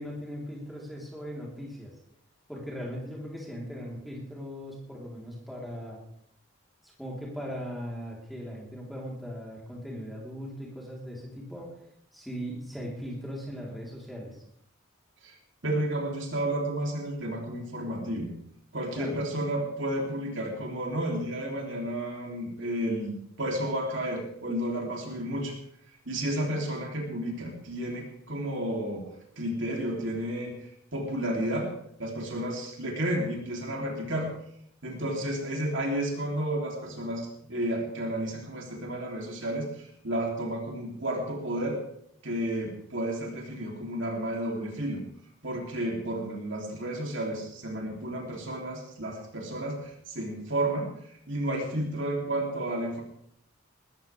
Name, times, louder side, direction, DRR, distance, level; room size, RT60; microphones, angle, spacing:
voice 1, 0.0-1.9 2.5-6.0 6.8-11.7 12.1-14.4 18.9-19.2, equal, ahead, -4 dB, 3.8 m, -39 dB
voice 2, 15.6-18.3 18.7-25.5 26.0-29.0 29.4-31.7 32.0-34.3 34.8-41.8 42.2-45.0 45.4-50.9 51.3-53.0, right 1 dB, 60° right, 0 dB, 3.3 m, -32 dB
20.0 x 14.0 x 3.5 m, 0.71 s
head